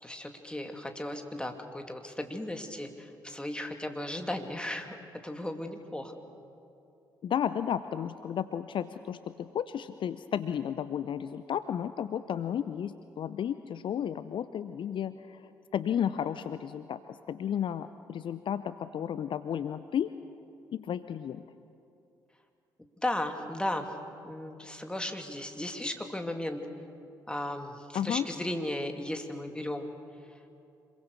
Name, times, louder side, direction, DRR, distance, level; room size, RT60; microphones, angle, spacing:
voice 1, 0.0-5.0 5.2-6.2 22.8-23.9 24.2-26.7 27.3-29.9, left 1 dB, 10° left, 4 dB, 2.6 m, -35 dB
voice 2, 7.2-15.4 15.7-20.1 20.7-21.4 27.9-28.3, left 9 dB, 50° left, 13 dB, 0.6 m, -33 dB
26.5 x 22.0 x 6.7 m, 2.7 s
figure-of-eight pair, 40°, 11 cm